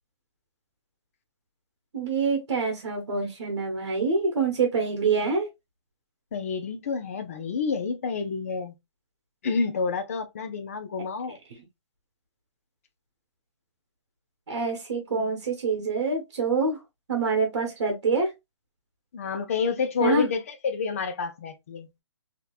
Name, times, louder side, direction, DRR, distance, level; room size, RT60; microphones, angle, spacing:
voice 1, 1.9-5.5 14.5-16.8 17.1-18.3 20.0-20.3, right 4 dB, 45° right, 1.2 m, -26 dB
voice 2, 6.3-8.7 9.4-11.4 15.1-15.3 19.1-22.0, left 5 dB, 30° left, 0.5 m, -29 dB
3.7 x 2.9 x 2.4 m
hypercardioid pair, 170°, 15 cm